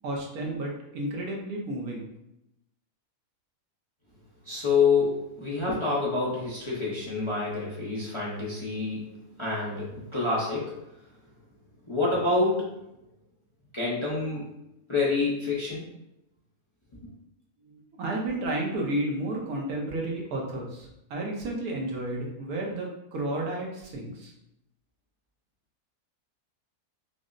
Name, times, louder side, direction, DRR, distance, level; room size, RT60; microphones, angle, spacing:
voice 1, 0.0-2.1 17.6-24.3, right 1 dB, 80° right, -1 dB, 1.3 m, -32 dB
voice 2, 4.4-9.1 9.4-10.8 11.9-12.8 13.7-14.5 14.9-15.9, left 4 dB, 30° left, -6 dB, 0.6 m, -27 dB
5.2 x 2.0 x 2.5 m, 0.85 s
omnidirectional pair, 1.5 m